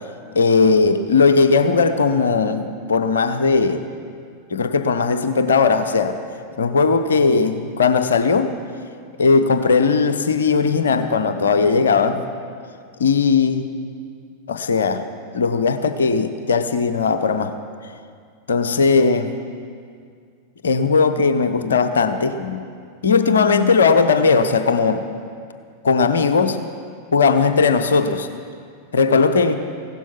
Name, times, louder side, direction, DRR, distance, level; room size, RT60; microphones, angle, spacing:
voice 1, 0.3-3.8 4.5-6.2 6.6-8.5 9.2-12.2 13.0-13.7 14.5-15.0 15.3-17.5 18.5-19.4 20.6-22.6 23.0-25.0 25.8-26.6 27.1-28.3 28.9-29.5, left 4 dB, 65° left, 10 dB, 0.8 m, -18 dB
16.0 x 12.0 x 5.8 m, 2.2 s
figure-of-eight pair, 90°, 0 cm